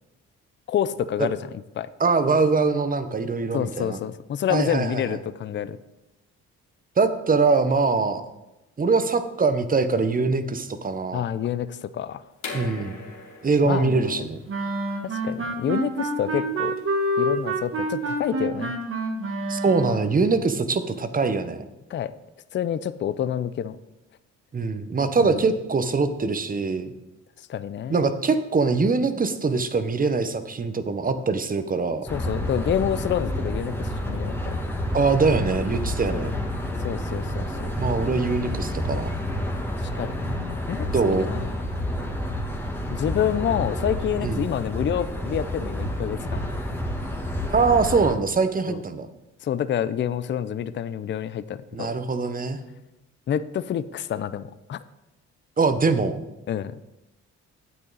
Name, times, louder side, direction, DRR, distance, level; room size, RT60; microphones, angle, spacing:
voice 1, 0.7-1.4 1.8-1.9 3.5-5.8 11.1-12.2 13.6-14.3 15.0-16.8 17.2-18.7 21.9-22.1 22.5-23.8 25.2-25.5 27.5-28.1 32.1-34.6 36.1-36.2 36.8-37.7 39.8-41.5 42.9-46.4 48.7-48.8 49.4-52.0 53.3-54.8 56.5-56.8, left 9 dB, 40° left, 15 dB, 0.4 m, -28 dB
voice 2, 2.0-4.0 4.5-5.0 7.0-8.2 8.8-11.2 12.5-13.0 13.4-14.4 19.5-21.6 24.5-26.9 27.9-32.0 34.9-36.3 37.8-39.1 40.9-41.3 44.2-44.4 47.5-49.1 51.7-52.6 55.6-56.2, right 4 dB, 30° right, 10 dB, 0.9 m, -23 dB
sound 1, 12.4-18.0, left 4 dB, 75° left, 2.7 m, -42 dB
sound 2, 14.5-20.1, right 1 dB, 45° right, 1.4 m, -27 dB
sound 3, 32.1-48.1, left 1 dB, 5° left, 1.4 m, -29 dB
9.3 x 8.4 x 4.0 m, 0.96 s
cardioid pair, 90°, 30 cm